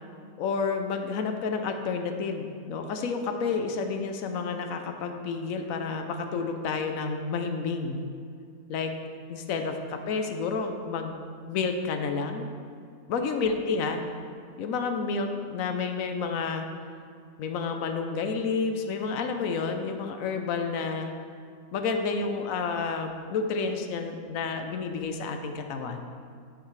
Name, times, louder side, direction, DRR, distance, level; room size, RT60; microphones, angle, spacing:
voice 1, 0.4-8.0 8.7-8.9 9.3-11.2 11.5-12.5 13.1-14.0 14.6-16.7 17.4-21.1 21.7-26.1, left 4 dB, 70° left, 5 dB, 1.0 m, -30 dB
9.8 x 5.9 x 3.2 m, 2.4 s
omnidirectional pair, 1.6 m